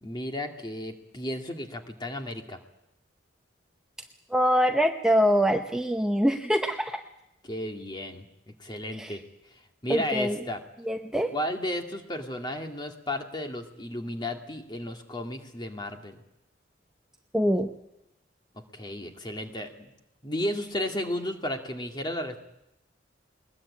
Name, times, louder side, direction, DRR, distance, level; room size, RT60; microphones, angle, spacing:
voice 1, 0.0-2.6 7.4-8.3 8.6-9.2 9.8-10.6 11.3-16.2 18.7-19.9 20.2-22.4, left 1 dB, 25° left, 4 dB, 2.1 m, -33 dB
voice 2, 4.3-7.0 8.9-9.2 9.9-10.4 10.8-11.3 17.3-17.7, equal, 5° right, 4 dB, 0.8 m, -24 dB
21.0 x 21.0 x 8.6 m, 0.85 s
head